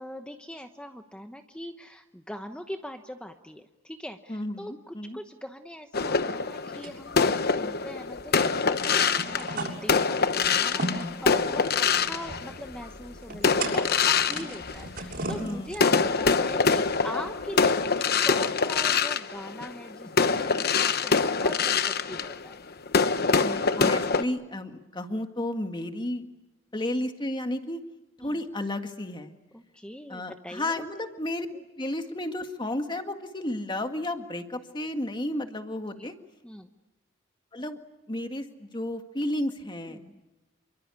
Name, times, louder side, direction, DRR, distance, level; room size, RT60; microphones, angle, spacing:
voice 1, 0.0-22.6 28.2-28.4 29.5-30.8 31.5-31.6 35.9-36.1 36.4-36.7 39.9-40.2, equal, 5° left, 6 dB, 0.9 m, -42 dB
voice 2, 4.3-5.2 10.2-10.3 10.7-11.5 15.4-15.8 20.4-20.7 23.4-26.2 26.7-27.8 28.2-29.3 30.1-31.5 31.8-36.1 37.5-37.8 38.1-40.0, left 1 dB, 25° left, 6 dB, 1.9 m, -33 dB
sound 1, 5.9-12.9 13.4-15.4 15.7-24.2, left 5 dB, 50° left, 1.0 m, -25 dB
sound 2, 6.8-8.0 8.3-8.4 8.6-16.2, right 2 dB, 50° right, 6.9 m, -37 dB
28.0 x 24.0 x 8.3 m, 1.0 s
head